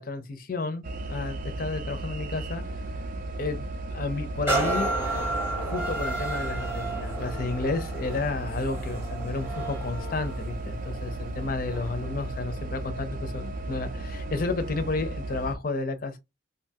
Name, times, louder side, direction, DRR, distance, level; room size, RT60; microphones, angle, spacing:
voice 1, 0.0-2.6 3.4-3.6 3.9-4.9 5.6-16.2, left 3 dB, 45° left, 0.5 m, -32 dB
sound 1, 0.8-15.6, right 2 dB, 40° right, 0.3 m, -35 dB
sound 2, 4.5-12.1 12.6-12.7, right 2 dB, 10° right, 0.8 m, -32 dB
2.6 x 2.3 x 2.7 m
head